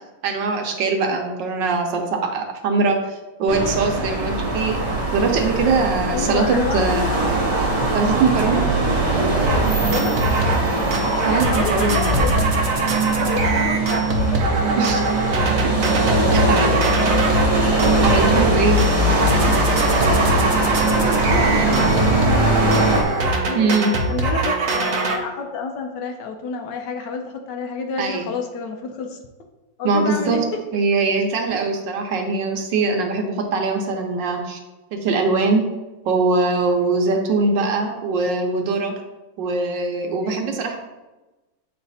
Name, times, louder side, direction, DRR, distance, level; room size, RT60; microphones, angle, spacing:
voice 1, 0.2-4.8 5.1-7.1 7.9-8.6 11.2-12.0 14.8-15.0 16.3-16.7 18.0-18.8 23.5-23.9 28.0-28.3 29.8-30.4 30.7-34.6 34.9-35.6 36.0-38.9 39.4-40.8, right 4 dB, 70° right, 3 dB, 1.4 m, -21 dB
sound 1, 3.5-23.0, right 2 dB, 40° right, 1.4 m, -20 dB
voice 2, 5.5-7.2 9.8-10.2 11.2-15.1 16.2-17.6 20.4-23.7 24.1-29.2 29.8-30.6 31.5-31.6 37.5-37.9 40.2-40.7, left 4 dB, 70° left, 4 dB, 1.2 m, -30 dB
sound 2, 9.4-9.6 9.9-10.7 10.9-17.5 17.8-18.5 18.8-25.2, right 2 dB, 55° right, 1.0 m, -23 dB
8.3 x 3.2 x 4.1 m, 1.1 s
omnidirectional pair, 2.1 m